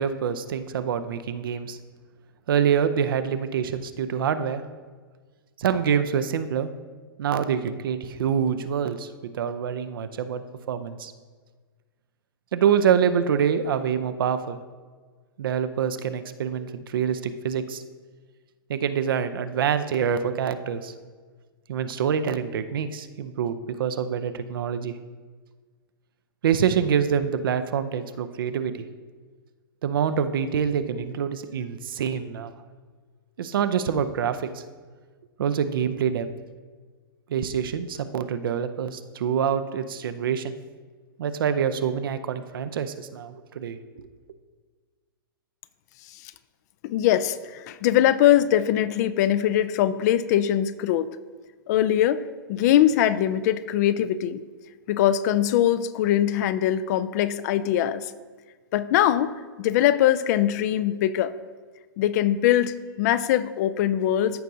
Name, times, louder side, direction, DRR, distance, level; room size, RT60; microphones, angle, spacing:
voice 1, 0.0-1.8 2.5-4.6 5.6-6.7 7.2-11.1 12.5-14.6 15.4-17.8 18.7-20.9 21.7-24.9 26.4-28.7 29.8-32.5 33.4-34.6 35.4-36.3 37.3-40.5 41.2-43.8, right 8 dB, 65° right, 11 dB, 0.6 m, -26 dB
voice 2, 46.8-51.1 51.7-54.4 54.9-58.1 58.7-61.3 62.0-64.4, left 11 dB, 45° left, 15 dB, 0.4 m, -22 dB
14.0 x 5.4 x 2.7 m, 1.5 s
hypercardioid pair, 115°, 12 cm